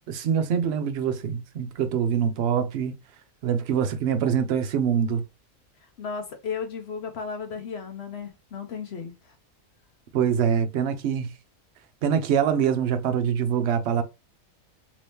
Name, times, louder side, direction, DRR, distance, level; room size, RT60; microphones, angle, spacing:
voice 1, 0.1-3.0 3.4-5.2 10.1-11.3 12.0-14.0, right 8 dB, 60° right, 0.7 m, -24 dB
voice 2, 6.0-9.3, left 6 dB, 60° left, 0.8 m, -34 dB
3.0 x 2.7 x 3.3 m
omnidirectional pair, 1.5 m